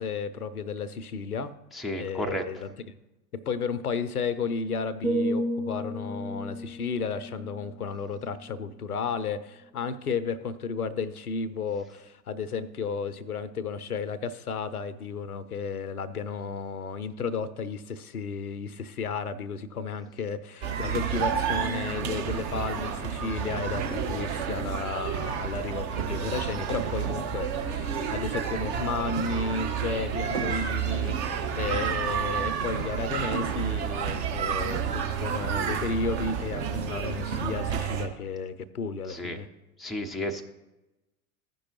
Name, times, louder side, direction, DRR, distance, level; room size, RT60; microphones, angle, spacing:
voice 1, 0.0-1.5 2.0-2.7 3.3-39.5, left 5 dB, 85° left, 15 dB, 0.6 m, -33 dB
voice 2, 1.7-2.4 39.1-39.4 39.8-40.4, left 1 dB, ahead, 2 dB, 0.4 m, -32 dB
sound 1, 5.0-9.0 9.4-9.7, right 1 dB, 70° right, 1.2 m, -33 dB
sound 2, 20.6-38.1, right 7 dB, 50° right, 1.4 m, -30 dB
15.0 x 5.3 x 3.0 m, 1.0 s
figure-of-eight pair, 80°, 44 cm